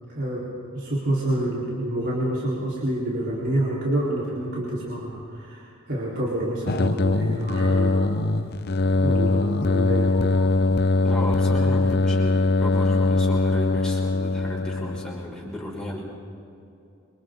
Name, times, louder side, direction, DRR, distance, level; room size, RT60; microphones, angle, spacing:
voice 1, 0.1-8.3 9.0-10.1, right 1 dB, 55° right, -7 dB, 4.3 m, -28 dB
sound 1, 6.7-15.3, left 3 dB, 50° left, 0.7 m, -22 dB
voice 2, 10.1-10.5 11.0-16.0, left 1 dB, 5° left, -4 dB, 6.2 m, -34 dB
29.5 x 26.0 x 4.0 m, 2.7 s
head